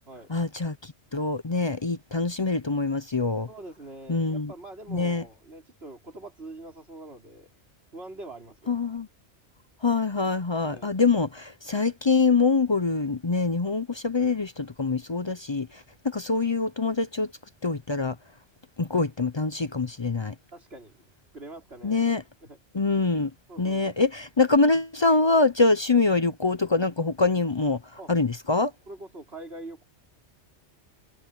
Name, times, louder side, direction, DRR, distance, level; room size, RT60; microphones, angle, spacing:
voice 1, 0.3-3.5 4.1-4.5 4.9-5.2 8.7-9.1 9.8-17.3 17.6-18.2 18.8-20.3 21.8-22.2 22.7-23.3 23.6-27.8 28.1-28.7, left 3 dB, 30° left, 0.5 m, -24 dB
voice 2, 3.5-7.5 7.9-8.9 10.6-10.9 20.5-21.1 21.3-22.0 22.4-22.6 23.5-23.9 28.0-28.1 28.9-29.8, right 2 dB, 60° right, 4.8 m, -44 dB
omnidirectional pair, 1.2 m